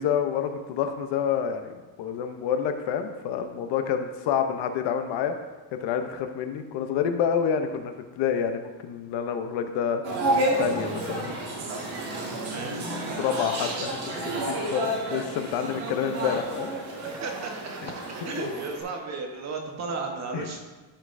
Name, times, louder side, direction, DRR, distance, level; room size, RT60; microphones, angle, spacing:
voice 1, 0.0-5.3 5.8-10.0 10.6-11.3 13.2-16.7 18.4-18.5 20.3-20.4, left 8 dB, 70° left, 7 dB, 0.8 m, -28 dB
sound 1, 10.0-18.8, right 1 dB, 55° right, 1.8 m, -30 dB
voice 2, 12.4-12.9 17.0-20.6, right 3 dB, 35° right, 2 dB, 1.1 m, -35 dB
11.5 x 5.4 x 2.6 m, 1.3 s
cardioid pair, 170°, 44 cm